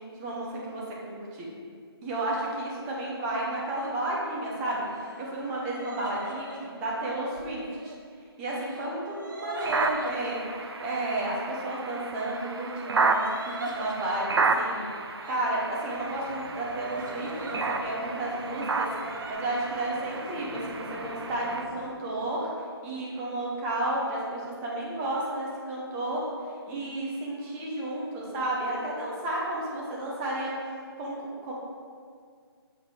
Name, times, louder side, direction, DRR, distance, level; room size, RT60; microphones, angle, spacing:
voice 1, 0.2-1.5 2.0-4.9 5.2-7.9 8.4-14.9 15.3-22.5 22.8-26.3 26.7-30.6 31.0-31.2 31.4-31.5, right 1 dB, 15° right, -4 dB, 0.7 m, -32 dB
sound 1, 3.8-4.0 4.8-7.9 8.5-10.4 12.3-15.4 16.0-17.9 18.2-19.3, right 2 dB, 50° right, 0.8 m, -41 dB
sound 2, 9.6-21.7, right 3 dB, 75° right, 0.5 m, -32 dB
sound 3, 15.9-21.8, equal, 5° left, 1.2 m, -43 dB
7.2 x 4.6 x 3.2 m, 2.1 s
figure-of-eight pair, 160°, 14 cm